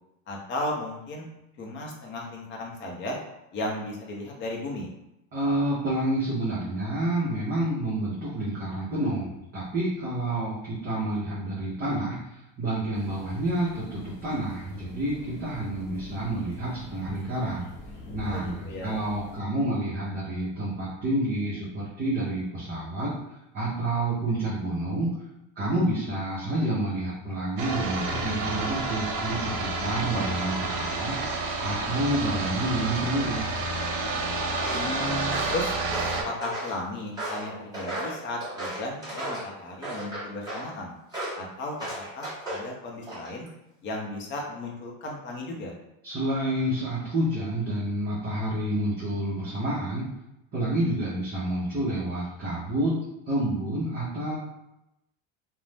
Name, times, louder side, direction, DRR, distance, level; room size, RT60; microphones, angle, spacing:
voice 1, 0.3-1.3 1.6-3.2 3.5-4.9 18.3-19.0 30.1-30.3 34.7-35.7 36.2-40.9 41.4-43.5 43.8-45.7, left 1 dB, 30° left, -1 dB, 0.6 m, -35 dB
voice 2, 5.3-17.6 18.1-23.1 23.5-25.1 25.6-31.1 31.6-33.5 46.0-50.1 50.5-53.0 53.3-54.4, right 1 dB, 25° right, -8 dB, 0.7 m, -29 dB
sound 1, 12.9-19.4, left 2 dB, 80° left, 1.1 m, -44 dB
sound 2, 27.6-36.2, right 3 dB, 90° right, 0.7 m, -30 dB
Walk footsteps, 34.5-34.9 35.3-36.8 37.2-39.5 39.8-40.7 41.1-41.4 41.8-42.7 43.0-43.5, right 1 dB, 10° right, 1.1 m, -35 dB
2.5 x 2.1 x 3.3 m, 0.88 s
cardioid pair, 145°, 39 cm